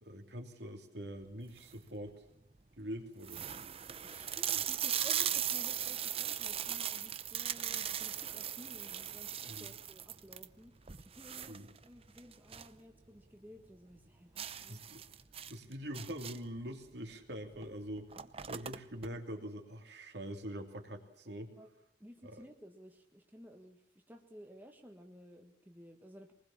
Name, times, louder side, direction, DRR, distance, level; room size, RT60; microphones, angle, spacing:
voice 1, 0.0-2.2 2.8-3.4 9.5-9.7 11.5-11.7 14.7-15.0 15.5-18.1 18.5-21.5 22.2-22.4, equal, 60° right, 4 dB, 3.1 m, -44 dB
sound 1, 1.4-1.9 2.5-2.6 2.8-2.9 3.2-12.8 13.1-13.2 13.6-13.7 14.4-16.6 17.5-17.7 17.9-19.1, right 9 dB, 30° right, 0.8 m, -38 dB
voice 2, 4.0-10.7 11.0-14.8 21.6-21.7 22.0-26.3, equal, 10° right, 3 dB, 1.6 m, -55 dB
23.5 x 20.0 x 7.3 m, 0.77 s
head